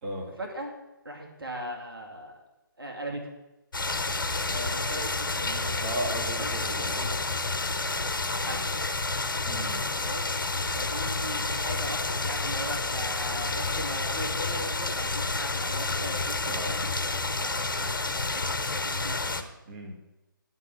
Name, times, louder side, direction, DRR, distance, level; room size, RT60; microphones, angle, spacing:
voice 1, 0.4-0.7 1.0-2.4 2.8-3.2 4.4-6.0 6.4-7.4 8.3-8.7 10.0-10.3 10.6-16.6 16.9-19.5, equal, 80° right, 0 dB, 2.3 m, -39 dB
sound 1, 3.7-19.4, left 3 dB, 65° left, 1.0 m, -30 dB
voice 2, 5.8-7.2 9.4-9.8 16.5-16.7 19.7-19.9, right 1 dB, 30° right, -2 dB, 2.1 m, -35 dB
11.0 x 3.8 x 7.5 m, 0.99 s
figure-of-eight pair, 145°, 12 cm